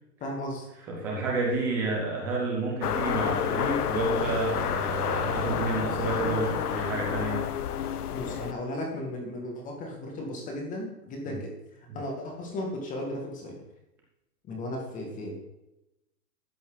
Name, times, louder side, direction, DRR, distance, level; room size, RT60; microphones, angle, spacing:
voice 1, 0.2-0.7 8.1-11.5 11.9-13.6 14.4-15.3, left 1 dB, 15° left, 1 dB, 2.2 m, -35 dB
voice 2, 0.9-7.4 11.2-11.3, right 3 dB, 5° right, -2 dB, 0.5 m, -30 dB
sound 1, 2.8-8.5, left 9 dB, 65° left, 0.9 m, -29 dB
13.0 x 7.6 x 4.0 m, 0.95 s
hypercardioid pair, 150°, 49 cm